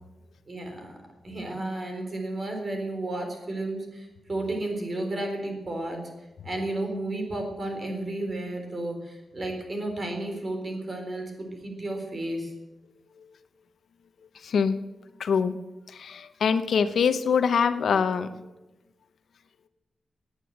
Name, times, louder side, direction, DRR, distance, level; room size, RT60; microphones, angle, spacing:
voice 1, 0.5-1.0 1.2-6.0 6.4-12.5, right 1 dB, 35° right, 3 dB, 4.0 m, -32 dB
voice 2, 14.4-14.8 15.2-15.6 15.9-18.5, left 6 dB, 80° left, 11 dB, 0.9 m, -24 dB
16.5 x 9.9 x 8.1 m, 1.1 s
wide cardioid pair, 135°, 0 cm